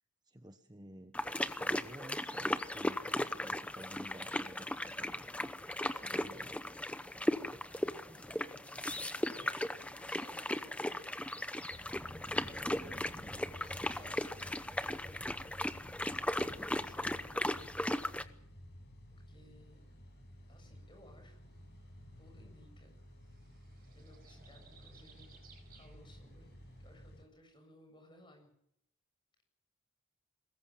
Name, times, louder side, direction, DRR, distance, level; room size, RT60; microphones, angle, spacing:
voice 1, 0.2-1.1 1.6-5.5 5.9-6.6, right 1 dB, 20° right, 7 dB, 1.1 m, -52 dB
sound 1, 1.1-18.2, left 1 dB, 5° left, 0.8 m, -37 dB
voice 2, 8.0-8.8 9.3-12.2 13.6-15.6 16.7-18.4 19.1-19.8 20.5-21.5 22.2-23.0 23.9-26.5 26.8-28.5, left 1 dB, 20° left, 3 dB, 7.7 m, -61 dB
sound 2, 11.7-27.2, equal, 50° left, 6.1 m, -54 dB
sound 3, 19.6-26.9, right 5 dB, 40° right, 6.0 m, -65 dB
23.0 x 20.5 x 7.6 m, 0.73 s
head